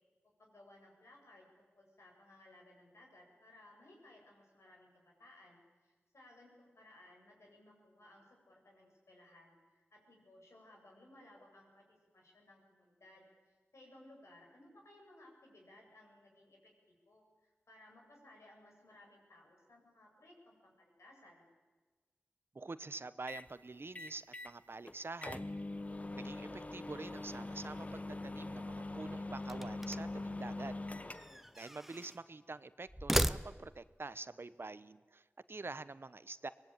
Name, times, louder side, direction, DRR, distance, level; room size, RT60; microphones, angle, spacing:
voice 1, 0.4-21.5, left 1 dB, 85° left, -1 dB, 7.7 m, -61 dB
voice 2, 22.5-25.5 26.2-30.8 31.6-36.5, right 3 dB, 55° right, 15 dB, 0.9 m, -47 dB
sound 1, 23.3-23.5 23.9-24.6 24.9-25.0 25.2-31.5, left 2 dB, 30° left, 1.1 m, -43 dB
sound 2, 29.5-30.2 31.1-32.2 32.9-33.9, equal, 5° right, 0.7 m, -36 dB
24.0 x 20.0 x 9.0 m, 1.3 s
wide cardioid pair, 60°, 5 cm